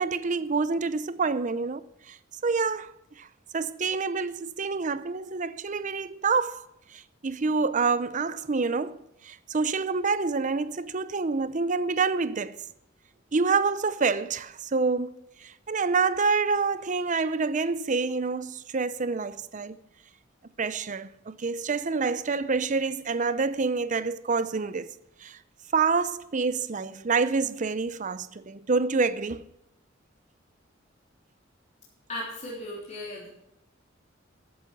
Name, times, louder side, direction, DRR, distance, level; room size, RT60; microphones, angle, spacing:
voice 1, 0.0-2.2 2.4-3.3 3.5-6.6 6.9-12.6 13.3-19.8 20.6-25.0 25.2-25.4 25.7-29.4, right 4 dB, 40° right, 0.6 m, -27 dB
voice 2, 32.1-33.3, left 1 dB, 35° left, 3.5 m, -36 dB
14.0 x 8.6 x 6.0 m
head